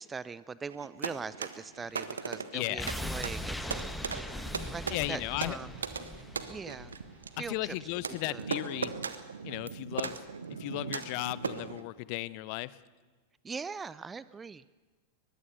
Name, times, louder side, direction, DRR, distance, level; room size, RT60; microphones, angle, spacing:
voice 1, 0.0-4.2 4.7-5.7 6.5-6.9 7.4-7.8 8.1-8.5 10.0-10.1 13.4-14.8, right 5 dB, 15° right, 18 dB, 0.6 m, -41 dB
sound 1, 0.7-11.8, right 5 dB, 70° right, 1.3 m, -39 dB
sound 2, 1.5-7.0, left 1 dB, 85° left, 2.9 m, -54 dB
voice 2, 2.5-2.9 4.9-5.6 7.5-8.9 9.4-10.2 10.6-12.8, left 20 dB, 45° left, 19 dB, 0.8 m, -35 dB
sound 3, 2.8-7.7 8.0-8.1, left 1 dB, 5° left, 1.3 m, -40 dB
23.0 x 21.0 x 6.9 m, 1.4 s
figure-of-eight pair, 90°, 0 cm